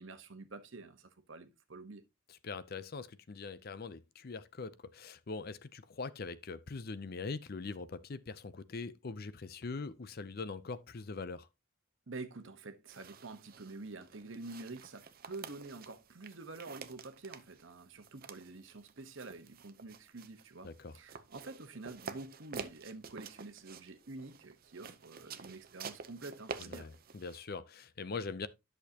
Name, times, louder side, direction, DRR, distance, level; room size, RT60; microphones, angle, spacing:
voice 1, 0.0-2.0 12.1-26.9, right 3 dB, 60° right, 1.0 m, -48 dB
voice 2, 2.3-11.5 20.6-21.0 26.6-28.5, left 4 dB, 45° left, 0.5 m, -42 dB
sound 1, 12.9-27.4, right 5 dB, 45° right, 0.6 m, -49 dB
10.5 x 6.5 x 2.8 m
head